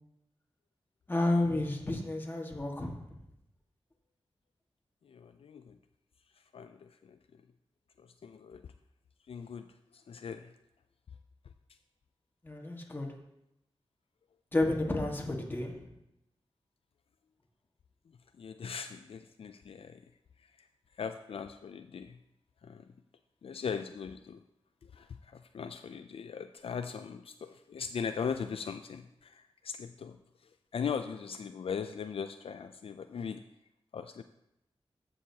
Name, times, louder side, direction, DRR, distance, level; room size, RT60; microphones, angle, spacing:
voice 1, 1.1-2.9 12.4-13.1 14.5-15.9, left 2 dB, 20° left, 1 dB, 1.5 m, -31 dB
voice 2, 5.0-5.8 6.5-7.2 8.0-8.6 9.3-9.7 9.9-10.5 18.4-20.0 20.6-20.7 21.0-22.2 22.6-22.9 23.4-24.4 24.9-30.2 30.7-33.4 33.9-34.2, left 6 dB, 70° left, 8 dB, 0.4 m, -39 dB
15.0 x 6.4 x 2.8 m, 0.84 s
wide cardioid pair, 100°, 10 cm